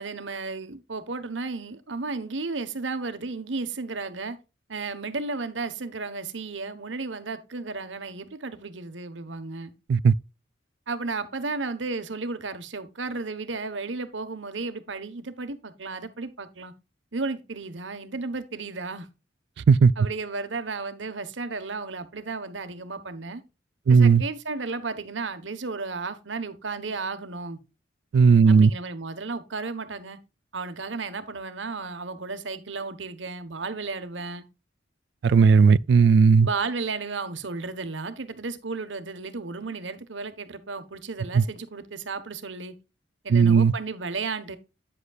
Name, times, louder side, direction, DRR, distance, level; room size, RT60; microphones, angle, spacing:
voice 1, 0.0-4.4 4.7-9.7 10.9-16.7 17.1-19.1 20.0-23.4 23.9-27.6 28.4-30.2 30.5-34.4 36.4-42.7 43.2-44.6, right 3 dB, 80° right, 1.2 m, -33 dB
voice 2, 23.9-24.2 28.1-28.7 35.2-36.5 41.3-41.4 43.3-43.7, right 5 dB, 60° right, 0.3 m, -16 dB
9.7 x 8.0 x 2.4 m
head